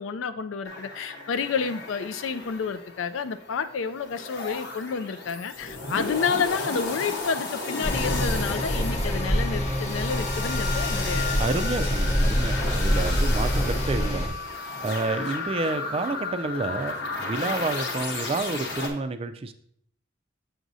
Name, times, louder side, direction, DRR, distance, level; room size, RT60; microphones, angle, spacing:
voice 1, 0.0-11.6, left 5 dB, 80° left, 11 dB, 0.4 m, -30 dB
sound 1, 0.7-18.9, left 3 dB, 60° left, 1.0 m, -34 dB
sound 2, 7.8-14.3, equal, 35° left, 0.8 m, -26 dB
voice 2, 11.3-14.4 14.8-19.5, right 3 dB, 30° right, 10 dB, 0.3 m, -29 dB
6.9 x 6.1 x 2.6 m, 0.69 s
head